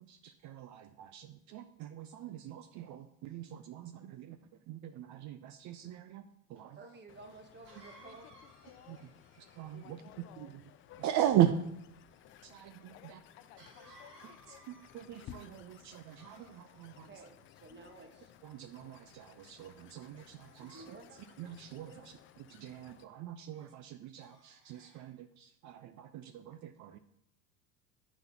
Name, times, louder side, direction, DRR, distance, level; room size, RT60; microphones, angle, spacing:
voice 1, 0.0-6.8 8.9-9.1 9.4-10.6 11.0-11.9 12.2-13.2 14.5-17.2 18.4-27.0, right 11 dB, 40° right, 11 dB, 0.5 m, -38 dB
Cough, 6.6-6.7 7.6-10.0 13.6-15.3 16.0-16.9 17.7-18.4 19.0-19.3 20.3-21.9 23.5-23.8 24.2-25.1, right 1 dB, 90° right, 1.7 m, -60 dB
voice 2, 6.8-8.3 17.0-18.3 20.6-21.2 21.8-22.1, right 3 dB, 25° right, 5 dB, 1.2 m, -53 dB
sound 1, 7.1-23.0, left 10 dB, 30° left, 0.4 m, -58 dB
voice 3, 8.0-9.0 9.7-10.5 12.9-14.6, left 11 dB, 60° left, 10 dB, 0.9 m, -58 dB
9.1 x 5.7 x 2.8 m, 0.75 s
hypercardioid pair, 85°, 47 cm